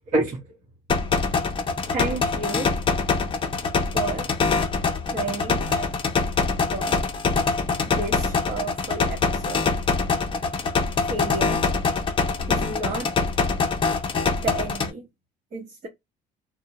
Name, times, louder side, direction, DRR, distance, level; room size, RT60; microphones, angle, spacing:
voice 1, 0.1-0.4 1.8-2.8 3.3-3.4 3.9-4.7 5.1-5.9 6.7-7.0 7.9-9.6 11.1-11.6 12.5-13.1 14.4-15.0 15.5-15.9, right 2 dB, 45° right, 0.9 m, -31 dB
sound 1, 0.9-14.9, left 4 dB, 30° left, 0.5 m, -24 dB
2.4 x 2.1 x 2.8 m
cardioid pair, 110°, 17 cm